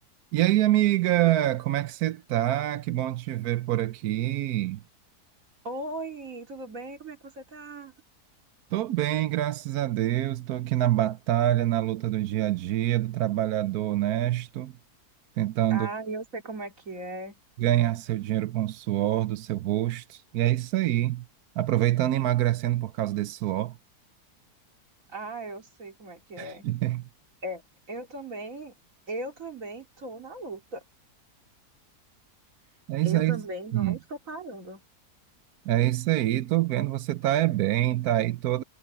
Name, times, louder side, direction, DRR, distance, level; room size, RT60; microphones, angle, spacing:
voice 1, 0.3-4.8 8.7-14.7 15.4-15.9 17.6-21.2 21.6-23.8 26.4-27.1 32.9-33.4 33.7-34.0 35.7-38.6, right 14 dB, 75° right, 1.1 m, -26 dB
voice 2, 5.6-7.9 15.7-17.4 25.1-26.6 27.4-27.6 27.9-28.7 29.1-30.8 33.0-34.8, right 2 dB, 55° right, 3.4 m, -37 dB
omnidirectional pair, 1.7 m